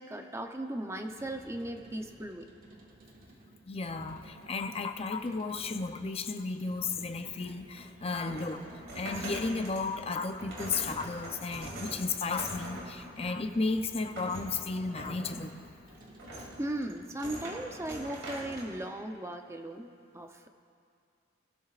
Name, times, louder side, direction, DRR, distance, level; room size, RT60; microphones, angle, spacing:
voice 1, 0.0-2.5 16.6-20.5, right 1 dB, 15° right, 4 dB, 0.7 m, -37 dB
sound 1, 1.0-17.1, right 1 dB, 45° right, 1.7 m, -55 dB
voice 2, 3.7-8.6 8.9-15.6, left 4 dB, 30° left, 7 dB, 0.6 m, -34 dB
sound 2, 7.4-18.7, right 1 dB, 65° right, 2.6 m, -44 dB
23.5 x 12.5 x 2.4 m, 2.4 s
head